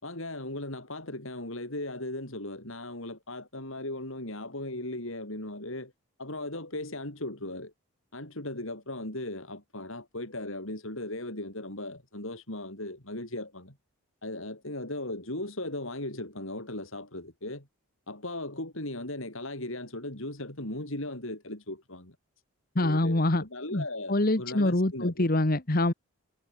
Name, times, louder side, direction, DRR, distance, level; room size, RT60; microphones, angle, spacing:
voice 1, 0.0-5.9 6.2-7.7 8.1-13.8 14.2-17.7 18.1-22.2 22.8-25.3, left 1 dB, 65° left, 5.6 m, -37 dB
voice 2, 22.7-23.4 23.7-25.9, left 1 dB, 40° left, 1.4 m, -25 dB
head